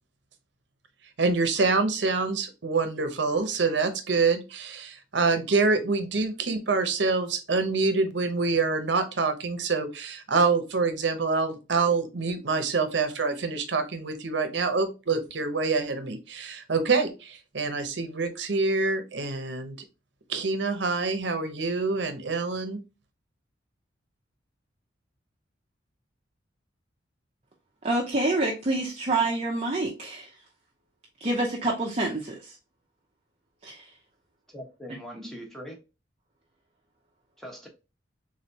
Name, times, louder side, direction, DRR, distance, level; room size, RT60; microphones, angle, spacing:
voice 1, 1.2-19.8 20.3-22.8, right 4 dB, 65° right, 0.8 m, -26 dB
voice 2, 27.8-30.3 31.2-32.6 33.6-33.9, right 2 dB, 35° right, 0.6 m, -27 dB
voice 3, 34.5-35.8 37.4-37.7, equal, ahead, 1.0 m, -41 dB
3.8 x 3.2 x 2.7 m
head